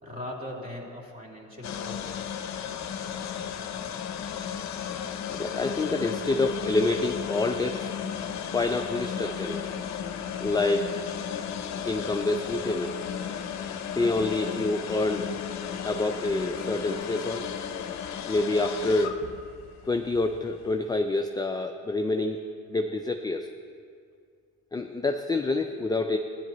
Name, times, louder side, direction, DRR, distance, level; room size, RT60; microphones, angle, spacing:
voice 1, 0.0-2.1, left 1 dB, 25° right, -3 dB, 3.0 m, -39 dB
sound 1, 1.6-20.8, left 8 dB, 50° left, 0.8 m, -34 dB
voice 2, 5.3-7.9 8.5-9.6 10.4-11.0 11.8-13.0 14.0-15.3 15.8-17.5 18.3-19.2 19.8-22.4 22.7-23.5 24.7-26.2, left 2 dB, 10° left, 5 dB, 0.4 m, -27 dB
15.5 x 10.5 x 3.0 m, 2.2 s
cardioid pair, 95°, 36 cm